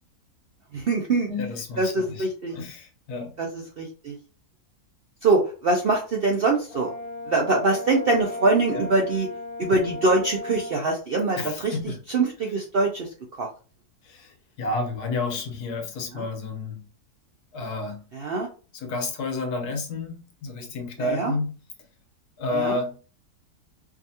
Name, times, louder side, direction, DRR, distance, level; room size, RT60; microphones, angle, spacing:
voice 1, 0.7-1.3 1.8-2.6 3.4-4.2 5.2-6.9 7.3-9.3 9.6-11.8 12.1-13.1 13.4-13.5 16.1-16.2 18.1-18.5 21.0-21.3 22.5-22.8, right 3 dB, 65° right, 1 dB, 0.5 m, -23 dB
voice 2, 1.3-3.3 8.7-8.9 11.4-12.0 14.0-16.8 17.5-18.0 18.7-21.5 22.4-22.9, left 3 dB, 80° left, 4 dB, 1.4 m, -30 dB
Brass instrument, 6.7-10.8, left 3 dB, 50° left, 0.4 m, -35 dB
4.8 x 2.5 x 2.7 m, 0.37 s
omnidirectional pair, 1.7 m